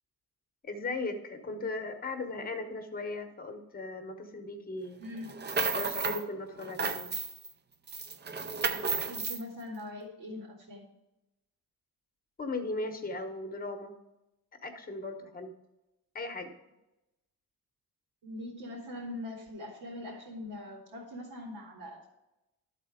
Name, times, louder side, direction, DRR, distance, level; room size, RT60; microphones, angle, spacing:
voice 1, 0.6-5.0 5.7-7.1 12.4-13.9 14.6-15.5 16.1-16.5, left 3 dB, 25° left, 6 dB, 1.0 m, -37 dB
voice 2, 5.0-5.4 8.7-10.9 18.2-22.1, left 1 dB, 85° right, -6 dB, 2.4 m, -42 dB
sound 1, 5.2-6.3 6.6-7.5 7.9-9.4, right 4 dB, 30° right, 0.5 m, -32 dB
12.5 x 4.2 x 4.9 m, 0.95 s
wide cardioid pair, 175°, 36 cm